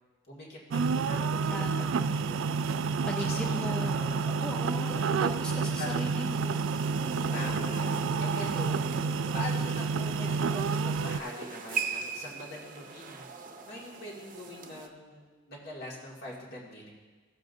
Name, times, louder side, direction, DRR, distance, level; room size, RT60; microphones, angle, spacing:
voice 1, 0.3-2.6 3.2-5.1 5.5-6.0 7.3-8.8 9.3-13.3 13.6-16.9, left 1 dB, 55° left, -4 dB, 2.1 m, -43 dB
sound 1, 0.7-11.2, right 5 dB, 75° right, 0.3 m, -29 dB
voice 2, 1.5-1.9 3.1-3.9 4.4-6.7, equal, 5° left, 1 dB, 0.4 m, -38 dB
sound 2, 6.2-14.9, right 4 dB, 40° right, 0.7 m, -40 dB
15.5 x 7.5 x 2.7 m, 1.4 s
head